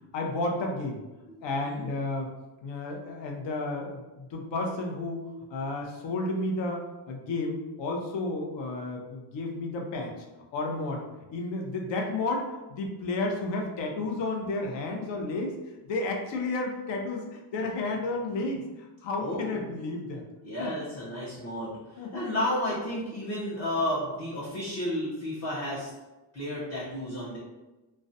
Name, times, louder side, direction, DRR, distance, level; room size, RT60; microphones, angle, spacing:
voice 1, 0.1-1.0 1.4-2.3 2.6-10.3 10.5-11.0 11.3-15.6 15.8-20.2 20.6-20.8 22.0-22.3, left 2 dB, 70° left, 1 dB, 0.6 m, -32 dB
voice 2, 19.2-19.6 20.4-25.9 26.3-27.4, left 1 dB, 35° left, -9 dB, 0.7 m, -32 dB
2.3 x 2.1 x 2.6 m, 1.1 s
cardioid pair, 130°, 45 cm